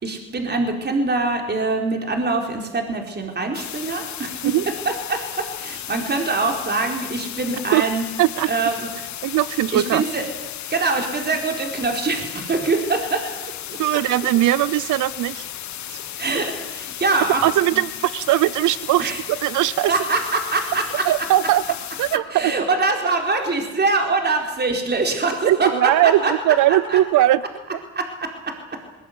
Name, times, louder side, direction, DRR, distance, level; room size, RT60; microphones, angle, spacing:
voice 1, 0.0-4.5 4.8-8.1 8.5-8.9 9.7-10.2 10.7-13.8 16.2-17.8 19.0-19.2 19.9-21.0 22.3-26.5 26.9-27.0 28.0-28.5, right 3 dB, 35° right, 3 dB, 4.4 m, -24 dB
sound 1, 3.5-22.2, left 11 dB, 65° left, 1.3 m, -34 dB
voice 2, 8.2-8.5 9.2-10.0 13.8-15.5 17.4-19.9 21.0-21.6 22.0-22.5 25.4-27.4 27.7-27.8, right 15 dB, 80° right, 18 dB, 0.7 m, -19 dB
21.0 x 20.5 x 9.5 m, 1.1 s
cardioid pair, 90°, 30 cm